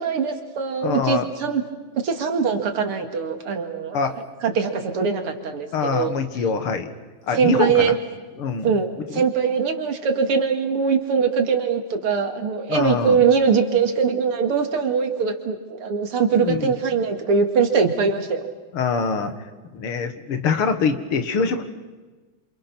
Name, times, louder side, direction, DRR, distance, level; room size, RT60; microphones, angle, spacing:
voice 1, 0.0-1.6 2.0-4.0 4.4-6.1 7.3-7.9 8.6-18.5, right 6 dB, 85° right, 5 dB, 3.0 m, -22 dB
voice 2, 0.8-1.3 3.9-4.1 5.7-6.9 7.3-7.9 8.4-8.7 9.1-9.2 12.7-13.2 16.4-16.7 18.7-19.3 19.7-21.6, left 5 dB, 80° left, 8 dB, 2.5 m, -24 dB
27.5 x 27.5 x 6.1 m, 1.3 s
omnidirectional pair, 2.4 m